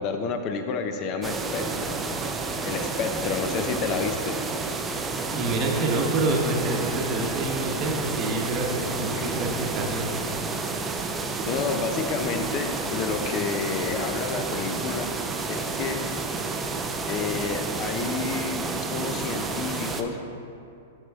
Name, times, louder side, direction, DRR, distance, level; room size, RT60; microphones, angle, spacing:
voice 1, 0.0-2.0 2.6-4.4 9.2-9.3 11.5-15.1 15.5-16.0 17.1-20.2, left 5 dB, 40° left, 6 dB, 0.6 m, -30 dB
sound 1, 1.2-20.0, right 3 dB, 15° right, 0.4 m, -30 dB
voice 2, 5.3-10.2, right 2 dB, 35° right, 0 dB, 0.9 m, -27 dB
7.2 x 5.4 x 3.6 m, 2.6 s
hypercardioid pair, 130°, 0 cm